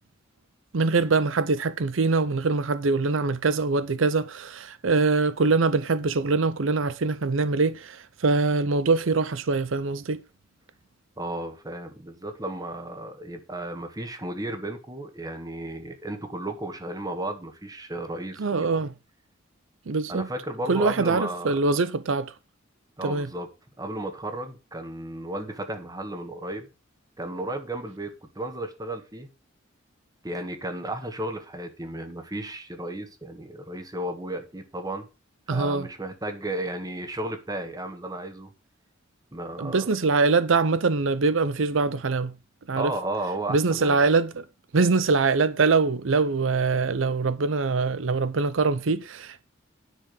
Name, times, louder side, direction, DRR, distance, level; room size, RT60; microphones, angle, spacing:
voice 1, 0.7-10.2 18.4-18.9 19.9-20.3 20.7-22.3 23.0-23.3 35.5-35.9 39.6-42.3 42.7-42.9 43.5-44.4 44.7-49.4, right 4 dB, 80° right, 0.7 m, -23 dB
voice 2, 11.2-18.7 20.1-21.7 23.0-23.5 23.8-26.7 27.2-29.3 30.2-35.1 35.5-38.5 39.3-39.9 42.7-44.0, right 1 dB, 20° right, 1.6 m, -34 dB
10.0 x 5.9 x 6.4 m
head